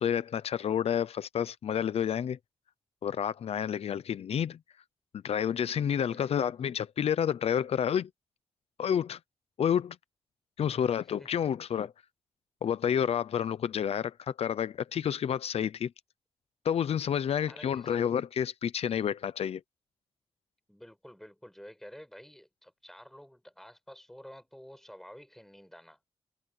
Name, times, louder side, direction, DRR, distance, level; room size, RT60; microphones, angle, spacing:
voice 1, 0.0-2.4 3.0-4.6 5.2-8.1 8.8-9.2 9.6-10.0 10.6-11.9 12.6-15.9 16.6-19.6, left 8 dB, 80° left, 0.6 m, -29 dB
voice 2, 5.9-6.7 10.6-11.3 17.4-18.0 20.7-26.0, equal, 5° left, 6.8 m, -51 dB
wide cardioid pair, 170°, 10 cm